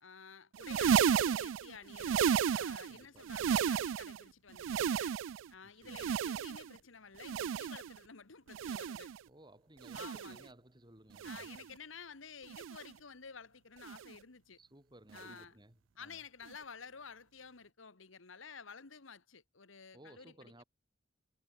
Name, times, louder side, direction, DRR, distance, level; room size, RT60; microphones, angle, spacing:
voice 1, 0.0-5.2 5.5-9.1 9.9-10.5 11.2-14.6 15.1-15.6 16.0-20.6, left 6 dB, 90° left, 1.5 m, -52 dB
sound 1, 0.5-3.0 3.2-4.2 4.5-5.5 5.9-6.8 7.2-8.0 8.5-9.2 9.8-10.4 11.1-11.7 12.5-12.9 13.8-14.1 15.1-15.3 16.5-16.6, right 8 dB, 85° right, 0.4 m, -33 dB
voice 2, 2.9-3.3 5.8-6.0 9.3-11.5 14.6-16.2 19.9-20.6, right 1 dB, 20° right, 5.4 m, -59 dB
head